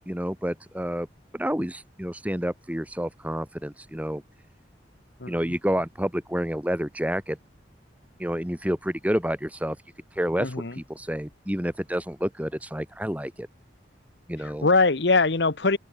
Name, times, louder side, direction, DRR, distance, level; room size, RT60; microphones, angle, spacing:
voice 1, 0.1-1.1 1.3-4.2 5.3-7.4 8.2-9.8 10.1-13.5 14.3-14.7, equal, 10° right, 1.8 m, -29 dB
voice 2, 10.4-10.7 14.4-15.8, left 3 dB, 70° left, 1.2 m, -22 dB
open air
head